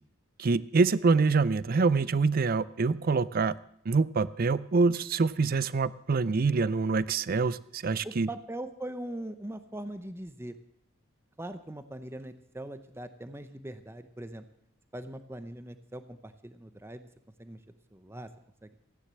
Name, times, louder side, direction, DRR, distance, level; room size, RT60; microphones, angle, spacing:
voice 1, 0.4-3.6 3.9-8.3, right 4 dB, 45° right, 18 dB, 0.5 m, -25 dB
voice 2, 8.0-10.6 11.4-14.4 14.9-17.0 17.4-17.6 17.9-18.3 18.6-18.8, right 1 dB, 10° right, 11 dB, 0.7 m, -41 dB
15.0 x 9.9 x 7.6 m, 0.71 s
head